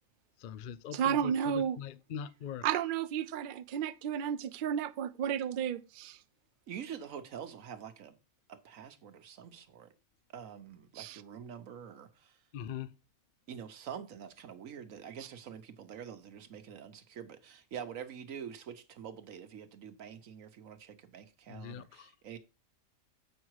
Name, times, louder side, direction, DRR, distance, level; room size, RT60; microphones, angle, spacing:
voice 1, 0.4-2.8 12.5-12.9 21.5-22.1, left 8 dB, 80° left, 0.4 m, -42 dB
voice 2, 0.9-1.8 2.6-6.2 11.0-11.2, right 9 dB, 85° right, 0.4 m, -32 dB
voice 3, 6.7-8.2 8.5-9.9 10.3-12.4 13.5-22.4, right 8 dB, 70° right, 1.3 m, -46 dB
7.5 x 5.6 x 4.7 m
omnidirectional pair, 1.5 m